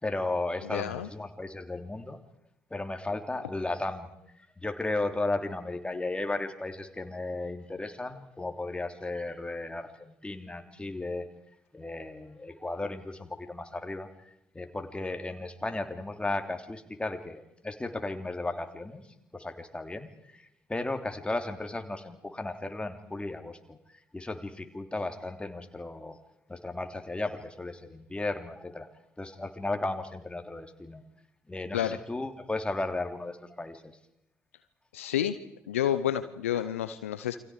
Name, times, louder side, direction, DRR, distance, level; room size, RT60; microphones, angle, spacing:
voice 1, 0.0-2.2 2.7-4.1 4.6-11.2 11.7-14.1 14.5-19.0 19.3-23.8 24.1-26.2 26.5-28.9 29.2-31.0 31.5-34.0, left 2 dB, 15° left, 6 dB, 3.0 m, -35 dB
voice 2, 0.6-1.1 31.7-32.0 34.9-35.4 35.7-37.4, left 10 dB, 80° left, 11 dB, 0.8 m, -29 dB
29.0 x 24.5 x 5.0 m, 0.79 s
figure-of-eight pair, 45°, 7 cm